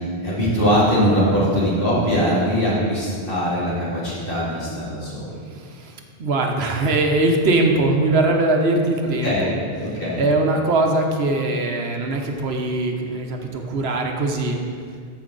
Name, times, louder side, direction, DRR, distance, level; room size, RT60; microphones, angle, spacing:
voice 1, 0.2-5.4 9.2-9.5 9.8-10.3, equal, 60° left, -8 dB, 2.8 m, -21 dB
voice 2, 5.6-5.9 6.2-9.5 10.2-14.6, right 2 dB, 75° right, 3 dB, 1.1 m, -21 dB
13.5 x 5.1 x 3.9 m, 2.1 s
omnidirectional pair, 1.1 m